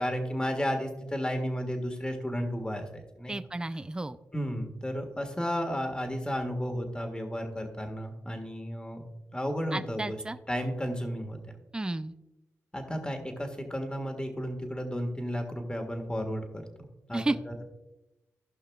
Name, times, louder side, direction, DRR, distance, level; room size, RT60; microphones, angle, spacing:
voice 1, 0.0-3.3 4.3-9.0 9.3-10.2 10.5-11.4 12.7-16.6 17.1-17.6, equal, 15° left, 4 dB, 1.7 m, -33 dB
voice 2, 3.3-4.2 9.7-10.4 11.7-12.1 17.1-17.4, right 2 dB, 15° right, 12 dB, 0.5 m, -32 dB
16.0 x 5.6 x 2.4 m, 1.0 s
cardioid pair, 65°, 6 cm